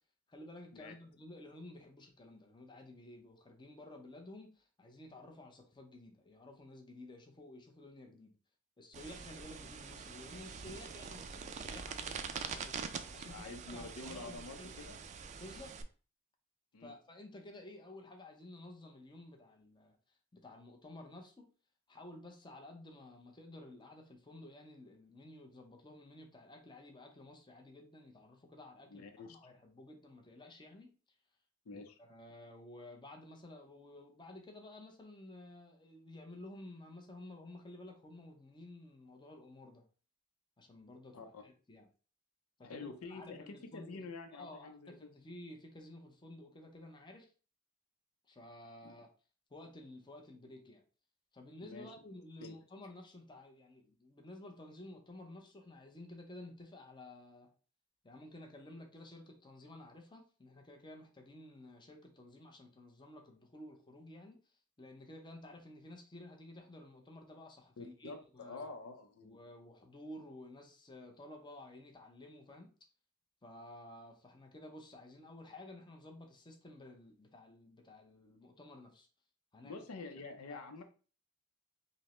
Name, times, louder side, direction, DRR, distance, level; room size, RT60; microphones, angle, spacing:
voice 1, 0.3-8.3 8.8-12.7 13.1-14.7 15.3-15.7 16.8-21.5 21.9-30.9 31.7-39.8 40.6-41.9 42.6-44.0 44.3-47.3 48.3-49.1 49.5-50.8 51.3-57.5 58.0-64.4 64.8-68.7 69.2-72.7 73.4-79.1 79.5-79.8 80.5-80.8, left 1 dB, 20° left, 2 dB, 0.7 m, -53 dB
sound 1, 8.9-15.8, right 6 dB, 35° right, 0.3 m, -45 dB
voice 2, 13.3-15.0 16.7-16.9 28.9-29.4 31.7-32.0 41.1-41.4 42.6-45.1 48.8-48.9 51.6-51.9 52.4-52.6 67.8-69.4 79.6-80.8, left 3 dB, 90° left, 6 dB, 0.6 m, -48 dB
5.2 x 2.1 x 3.0 m, 0.38 s
head